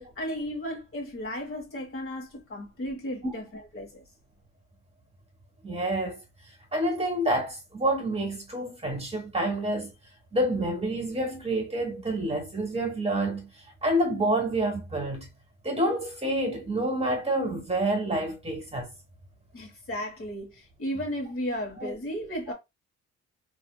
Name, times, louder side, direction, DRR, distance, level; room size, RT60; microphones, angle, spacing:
voice 1, 0.0-3.5 3.7-4.0 19.5-22.5, equal, 45° left, 1.4 m, -34 dB
voice 2, 5.6-6.2 6.7-9.9 10.3-13.5 13.8-15.3 15.6-18.9 21.8-21.9, right 1 dB, 20° right, 1.2 m, -28 dB
2.8 x 2.6 x 2.2 m
cardioid pair, 90°, 30 cm